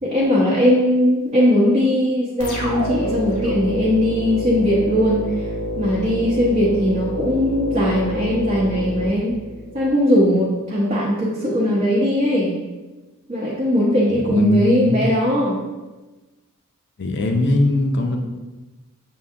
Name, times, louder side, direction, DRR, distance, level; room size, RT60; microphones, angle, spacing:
voice 1, 0.0-5.4 5.8-9.4 9.7-12.6 13.3-15.6, equal, 35° right, -7 dB, 0.8 m, -19 dB
sound 1, 2.4-9.9, left 1 dB, 90° left, 0.9 m, -28 dB
voice 2, 14.1-15.0 17.0-18.2, left 1 dB, 50° left, 3 dB, 0.5 m, -20 dB
6.8 x 2.6 x 2.5 m, 1.2 s
head